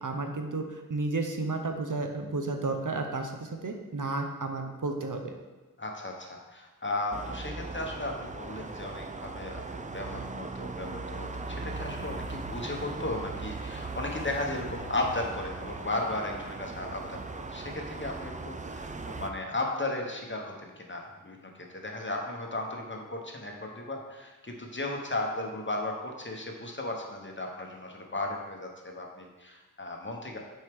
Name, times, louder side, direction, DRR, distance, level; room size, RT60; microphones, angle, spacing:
voice 1, 0.0-5.3, right 3 dB, 65° right, 4 dB, 0.7 m, -32 dB
voice 2, 5.8-30.4, left 2 dB, 35° left, 1 dB, 0.9 m, -35 dB
sound 1, 7.1-19.3, right 3 dB, 25° right, 0.3 m, -39 dB
6.3 x 4.6 x 3.5 m, 1.2 s
wide cardioid pair, 50°, 33 cm